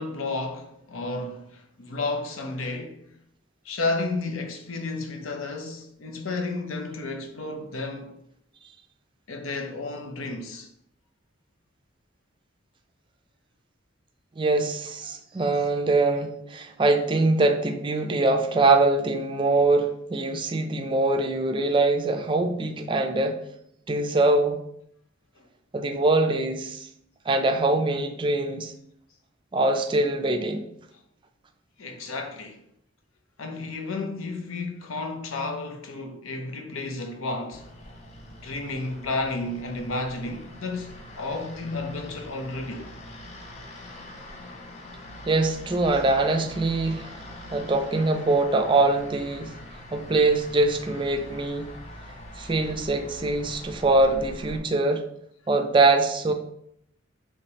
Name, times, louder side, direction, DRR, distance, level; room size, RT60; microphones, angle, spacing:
voice 1, 0.0-3.1 3.6-8.2 9.3-10.7 25.4-25.5 31.8-32.6 33.4-37.7 38.4-42.9 45.9-46.0, left 3 dB, 85° left, 0.7 m, -32 dB
voice 2, 14.4-23.4 23.9-24.6 25.7-26.9 27.3-28.7 29.5-30.7 45.3-47.2 47.5-49.5 49.9-51.7 52.4-55.0 55.5-56.3, right 2 dB, 25° right, 0.4 m, -23 dB
Tractor driving in the fields from far away, 37.5-54.6, equal, 35° left, 0.7 m, -43 dB
5.0 x 3.2 x 2.8 m
head